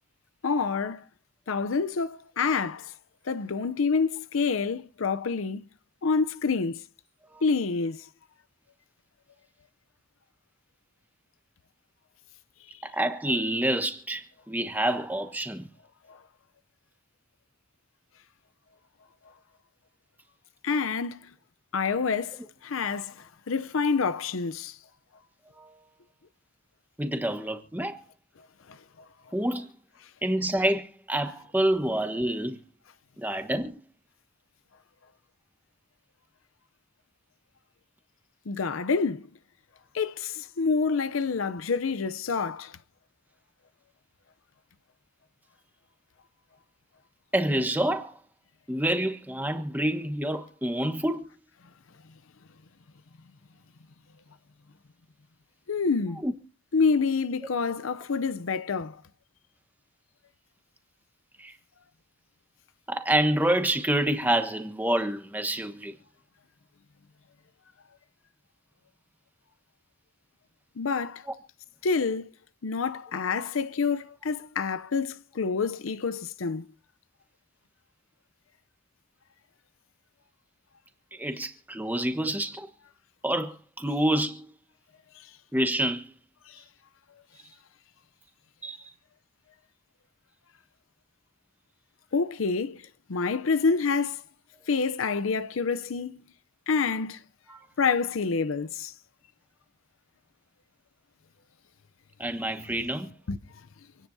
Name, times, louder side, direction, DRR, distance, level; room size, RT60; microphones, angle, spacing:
voice 1, 0.4-1.0 1.5-2.9 3.3-5.6 6.0-6.8 7.4-8.1 16.1-16.2 20.6-21.2 21.7-24.8 28.7-28.8 38.5-39.3 39.9-42.7 55.7-56.2 56.7-59.0 70.8-71.3 71.8-72.3 72.6-76.7 86.5-86.6 92.1-94.2 94.7-96.2 96.7-97.2 97.8-98.9 103.3-103.4, left 5 dB, 80° left, 0.6 m, -27 dB
voice 2, 12.8-15.7 25.6-25.7 27.0-28.0 29.3-29.7 30.2-32.6 33.2-33.8 47.3-48.2 48.7-51.2 56.2-56.3 61.4-61.5 62.9-65.9 81.1-82.7 83.2-84.5 85.5-86.1 88.6-88.8 97.5-97.6 102.2-103.1, right 1 dB, 10° right, 1.2 m, -27 dB
27.5 x 10.0 x 2.7 m
head